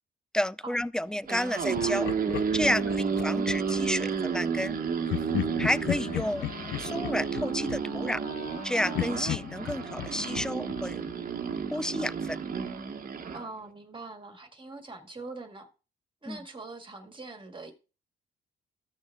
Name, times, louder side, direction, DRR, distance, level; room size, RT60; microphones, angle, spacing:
voice 1, 0.3-2.1 2.5-4.8 5.6-6.5 6.8-8.2 8.6-11.0 11.7-12.4 16.3-16.4, left 1 dB, 5° left, 0.3 m, -31 dB
sound 1, 1.1-13.4, right 6 dB, 45° right, 1.2 m, -32 dB
Laughter, 1.8-3.9 5.1-8.6 8.9-11.7, left 12 dB, 70° left, 0.5 m, -36 dB
voice 2, 2.8-3.1 13.3-15.7 16.2-17.7, right 3 dB, 25° right, 1.8 m, -43 dB
Wind instrument woodwind instrument, 5.4-12.1, left 4 dB, 30° left, 0.9 m, -47 dB
15.0 x 6.4 x 2.3 m
cardioid pair, 90°, 20 cm